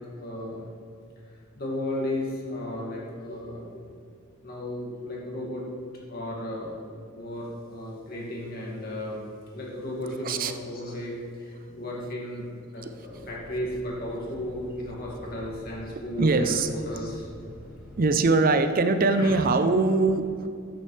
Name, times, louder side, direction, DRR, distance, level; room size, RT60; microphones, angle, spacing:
voice 1, 0.2-0.7 1.3-3.8 4.4-5.6 6.1-6.8 7.1-9.2 9.5-17.3 19.1-19.5, left 1 dB, 45° left, -3 dB, 2.1 m, -34 dB
sound 1, 13.0-18.2, equal, 5° right, 2.1 m, -47 dB
voice 2, 16.2-16.7 18.0-20.5, right 3 dB, 45° right, 9 dB, 0.5 m, -22 dB
9.7 x 8.7 x 3.3 m, 2.4 s
head